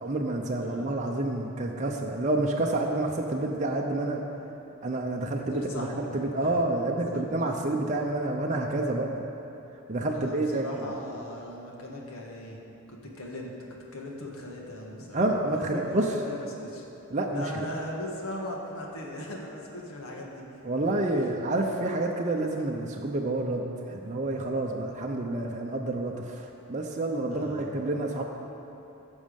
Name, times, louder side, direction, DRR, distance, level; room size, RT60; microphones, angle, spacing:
voice 1, 0.0-4.2 4.8-9.1 9.9-10.9 15.1-16.1 17.1-17.5 20.6-28.2, right 2 dB, 35° right, 0 dB, 0.7 m, -28 dB
voice 2, 0.6-0.9 5.5-6.0 6.4-6.6 7.1-7.2 10.1-12.6 12.9-13.5 13.9-15.2 15.5-16.8 17.3-20.4 21.2-21.3 27.3-27.8, left 1 dB, 85° left, -1 dB, 1.7 m, -39 dB
15.0 x 6.3 x 5.3 m, 3.0 s
head